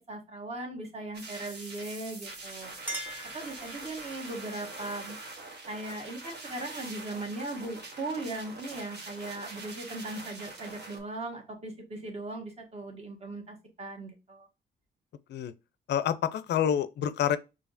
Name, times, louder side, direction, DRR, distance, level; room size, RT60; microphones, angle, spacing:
voice 1, 0.1-2.7 3.3-5.2 5.7-14.5, right 2 dB, 30° right, 1.4 m, -38 dB
sound 1, 1.1-11.0, right 2 dB, 60° right, 1.3 m, -44 dB
Chink clink, 2.3-4.2, equal, 10° right, 1.2 m, -41 dB
voice 2, 15.9-17.4, left 9 dB, 60° left, 0.5 m, -27 dB
4.8 x 2.9 x 2.5 m
cardioid pair, 90°, 20 cm